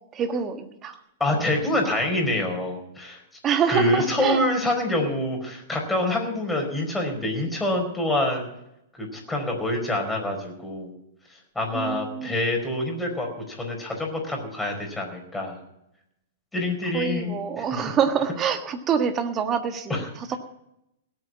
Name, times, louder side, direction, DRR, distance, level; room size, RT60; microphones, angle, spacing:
voice 1, 0.1-1.0 3.4-4.4 11.7-12.4 16.9-20.4, right 7 dB, 25° right, 8 dB, 1.6 m, -26 dB
voice 2, 1.2-3.2 3.7-8.4 8.9-10.9 11.5-15.6 16.5-17.6 19.9-20.0, left 1 dB, 5° left, 1 dB, 4.7 m, -26 dB
18.0 x 8.5 x 7.3 m, 0.83 s
hypercardioid pair, 110°, 0 cm